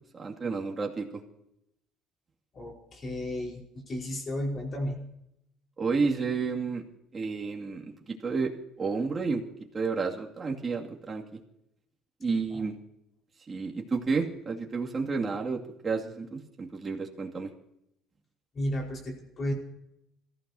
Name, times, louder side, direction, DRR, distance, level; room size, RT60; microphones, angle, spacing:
voice 1, 0.1-1.2 5.8-6.8 7.1-8.5 8.8-9.4 9.7-11.2 12.2-12.7 13.5-17.5, right 4 dB, 25° right, 0 dB, 2.4 m, -31 dB
voice 2, 2.5-5.1 12.5-12.6 18.5-19.5, left 1 dB, 30° left, 0 dB, 4.8 m, -33 dB
26.5 x 15.0 x 2.8 m, 0.81 s
cardioid pair, 140°, 0 cm